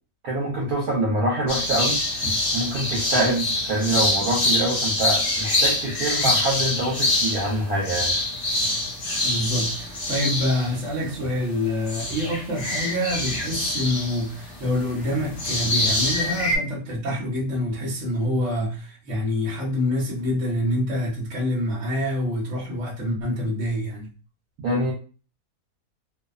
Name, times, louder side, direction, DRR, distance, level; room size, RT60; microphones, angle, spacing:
voice 1, 0.2-2.0 2.5-8.1 24.6-24.9, right 1 dB, 80° right, 1.2 m, -25 dB
sound 1, 1.5-11.6 11.9-16.6, left 1 dB, 45° left, 1.1 m, -25 dB
voice 2, 9.2-24.1, left 1 dB, 55° right, 1.1 m, -26 dB
2.7 x 2.2 x 2.3 m
omnidirectional pair, 1.6 m